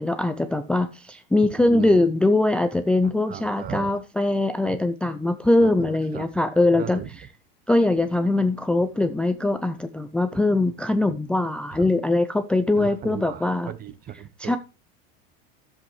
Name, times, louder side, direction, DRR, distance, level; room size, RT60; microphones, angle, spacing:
voice 1, 0.0-7.3 7.7-13.7 14.4-14.6, left 2 dB, 5° left, 0.4 m, -22 dB
voice 2, 1.6-2.0 3.3-3.9 5.6-6.3 6.7-7.1 11.8-11.9 12.8-14.6, right 9 dB, 30° right, 0.8 m, -36 dB
11.5 x 7.7 x 3.1 m
supercardioid pair, 135°, 32 cm